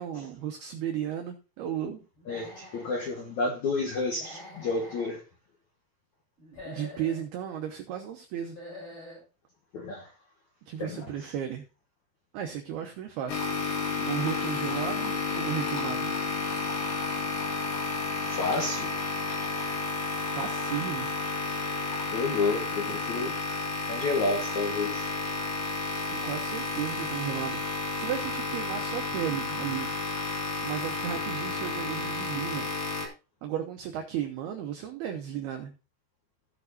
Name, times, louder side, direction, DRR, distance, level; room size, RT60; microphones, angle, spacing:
voice 1, 0.0-2.0 6.7-8.6 10.7-11.6 12.3-13.5 14.0-16.1 20.3-21.1 25.9-27.6 28.0-29.9 30.6-32.7 33.4-35.7, right 10 dB, 85° right, 2.2 m, -34 dB
Human voice / Animal, 2.2-3.0 4.1-5.1 6.4-7.2 8.4-9.2, left 2 dB, 30° left, 6.9 m, -45 dB
voice 2, 2.3-5.2 9.7-10.1 10.8-11.3 18.2-18.9 22.1-23.4 23.9-25.1, left 3 dB, 85° left, 1.6 m, -30 dB
sound 1, 13.3-33.1, left 3 dB, 55° left, 2.5 m, -31 dB
15.5 x 7.0 x 2.7 m
omnidirectional pair, 5.8 m